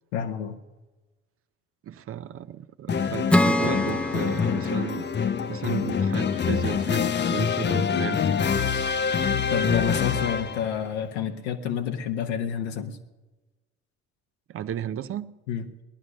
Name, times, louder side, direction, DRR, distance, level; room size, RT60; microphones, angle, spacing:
voice 1, 0.1-0.6 9.5-13.0 15.5-15.6, left 8 dB, 75° left, 6 dB, 1.4 m, -29 dB
voice 2, 1.8-5.1 5.5-8.5 14.5-15.3, right 10 dB, 45° right, 13 dB, 0.7 m, -34 dB
sound 1, 2.9-10.7, left 6 dB, 35° left, 0.8 m, -25 dB
Acoustic guitar / Strum, 3.3-6.8, left 1 dB, 5° left, 0.8 m, -27 dB
17.5 x 11.0 x 6.4 m, 1.2 s
hypercardioid pair, 55°, 32 cm